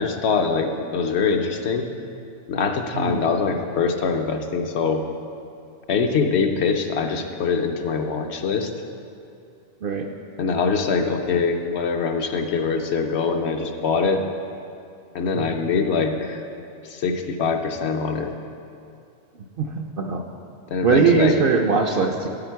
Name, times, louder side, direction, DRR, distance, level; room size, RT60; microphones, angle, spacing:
voice 1, 0.0-1.9 2.5-5.0 5.9-8.7 10.4-14.3 15.1-16.5 16.8-18.3 20.7-21.4, left 5 dB, 65° left, 5 dB, 0.9 m, -23 dB
voice 2, 19.6-20.2 20.8-22.3, right 5 dB, 60° right, 3 dB, 0.6 m, -21 dB
9.1 x 8.8 x 4.6 m, 2.5 s
omnidirectional pair, 1.3 m